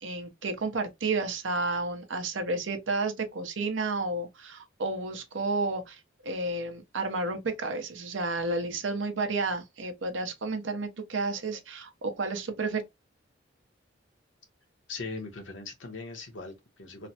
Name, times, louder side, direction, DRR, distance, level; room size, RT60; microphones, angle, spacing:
voice 1, 0.0-12.8, right 3 dB, 90° right, 0.7 m, -31 dB
voice 2, 14.9-17.1, left 3 dB, 85° left, 1.0 m, -40 dB
3.2 x 2.1 x 2.7 m
head